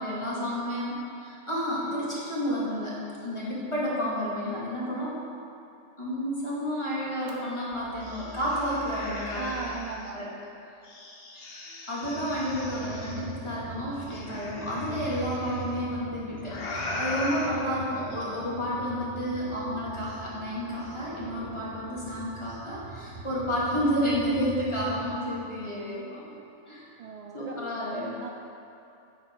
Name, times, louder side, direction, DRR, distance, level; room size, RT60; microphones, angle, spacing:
voice 1, 0.0-5.2 6.0-9.4 10.1-10.3 11.9-26.3 26.7-26.9 27.3-28.1, equal, 25° left, -8 dB, 2.3 m, -31 dB
sound 1, 7.3-7.4 7.7-10.1 10.8-13.2 14.1-15.6 16.4-17.5, left 2 dB, 55° left, 1.2 m, -38 dB
voice 2, 9.3-10.3 27.0-27.7 28.2-28.3, right 4 dB, 80° right, 2 dB, 0.3 m, -37 dB
sound 2, 12.0-25.2, right 4 dB, 40° right, 0.8 m, -42 dB
8.9 x 8.4 x 4.6 m, 2.7 s
omnidirectional pair, 1.2 m